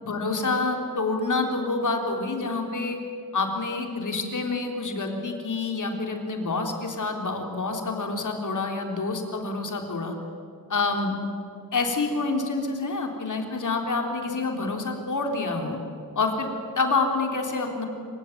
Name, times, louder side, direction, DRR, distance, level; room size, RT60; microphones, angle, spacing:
voice 1, 0.1-3.0 3.3-10.1 10.7-11.1 11.7-15.8 16.2-16.5 16.8-17.8, left 3 dB, 55° left, 3 dB, 3.6 m, -27 dB
26.5 x 16.0 x 9.3 m, 2.5 s
wide cardioid pair, 95°, 36 cm